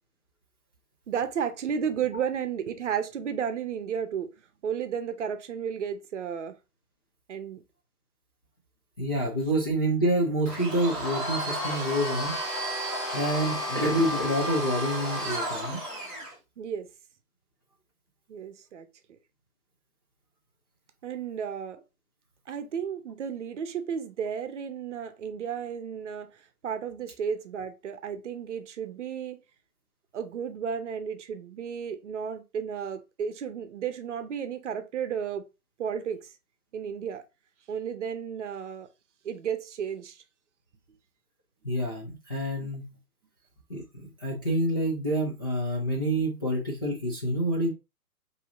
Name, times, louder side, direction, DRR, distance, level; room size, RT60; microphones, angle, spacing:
voice 1, 1.1-4.3 4.6-6.5 7.3-7.6 16.6-16.9 18.3-18.9 21.0-21.8 22.5-26.3 26.6-29.4 30.1-35.4 35.8-36.3 36.7-37.2 37.7-38.9 39.2-40.2 42.5-42.8, right 7 dB, 50° right, 0.8 m, -33 dB
voice 2, 9.0-12.4 13.1-15.8 41.6-42.9 43.7-43.8 44.2-47.7, right 1 dB, 15° left, 0.4 m, -27 dB
Domestic sounds home sounds, 10.5-16.3, equal, ahead, 1.9 m, -32 dB
5.3 x 2.8 x 2.6 m
figure-of-eight pair, 125°, 46 cm